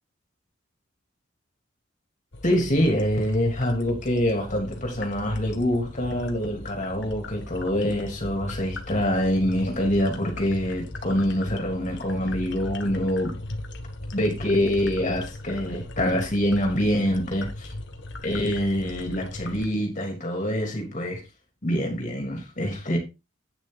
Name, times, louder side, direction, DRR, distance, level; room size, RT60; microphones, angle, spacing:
sound 1, 2.3-19.7, left 1 dB, 55° left, 1.5 m, -38 dB
voice 1, 2.4-13.4 14.1-17.7 18.2-21.2 21.6-23.0, equal, 35° left, 3.3 m, -25 dB
9.4 x 6.4 x 4.1 m
head